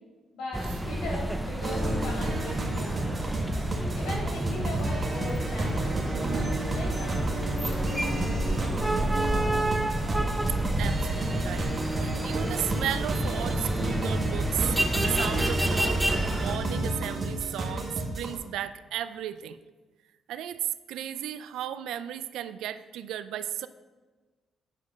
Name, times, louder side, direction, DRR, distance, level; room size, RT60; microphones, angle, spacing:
voice 1, 0.3-3.2 3.9-9.4, left 1 dB, 85° left, -3 dB, 3.0 m, -39 dB
sound 1, 0.5-16.6, right 1 dB, 5° right, 0.7 m, -29 dB
sound 2, 1.6-18.4, right 2 dB, 30° right, 1.7 m, -32 dB
voice 2, 10.8-19.6 20.3-23.7, right 11 dB, 85° right, 13 dB, 0.4 m, -35 dB
9.3 x 5.2 x 5.2 m, 1.3 s
cardioid pair, 90°, 0 cm